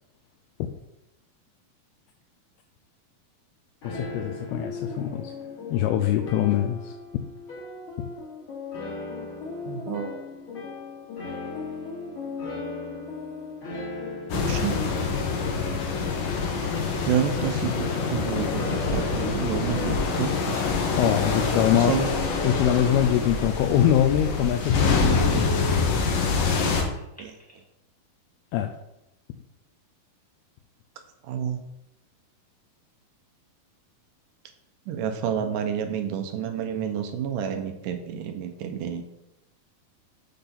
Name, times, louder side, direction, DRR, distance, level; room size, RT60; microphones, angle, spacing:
voice 1, 3.8-5.3 5.7-6.9 21.0-22.0 22.4-25.6 28.5-28.7, left 10 dB, 90° left, 3 dB, 2.6 m, -23 dB
sound 1, 3.8-23.4, left 3 dB, 35° left, 3.3 m, -37 dB
voice 2, 9.7-10.1 14.3-14.8 17.0-20.7 21.7-22.1 27.2-27.3 31.2-31.6 34.9-39.0, right 8 dB, 75° right, 6 dB, 2.1 m, -29 dB
sound 2, 14.3-26.8, left 4 dB, 70° left, 2.8 m, -26 dB
Telephone, 21.9-23.0 23.5-23.7 24.1-24.2 24.6-25.8 27.0-27.6, right 1 dB, 5° left, 1.1 m, -36 dB
8.0 x 6.8 x 4.3 m, 0.87 s
omnidirectional pair, 4.4 m